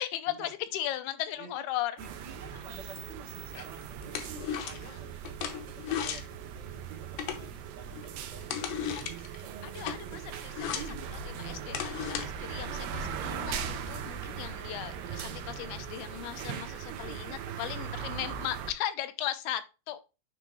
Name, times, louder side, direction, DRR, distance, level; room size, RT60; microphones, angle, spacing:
voice 1, 0.0-1.9 2.5-2.6 4.7-5.0 9.6-20.0, left 12 dB, 90° left, 2.6 m, -37 dB
voice 2, 2.0-9.2 10.7-11.2 12.5-13.5 16.7-17.9, right 6 dB, 55° right, 2.3 m, -49 dB
sound 1, 2.0-18.7, right 8 dB, 85° right, 2.8 m, -40 dB
sound 2, 2.1-12.3, left 8 dB, 75° left, 2.1 m, -39 dB
sound 3, 10.6-15.8, right 1 dB, 25° left, 1.3 m, -45 dB
8.9 x 3.5 x 3.1 m
omnidirectional pair, 4.5 m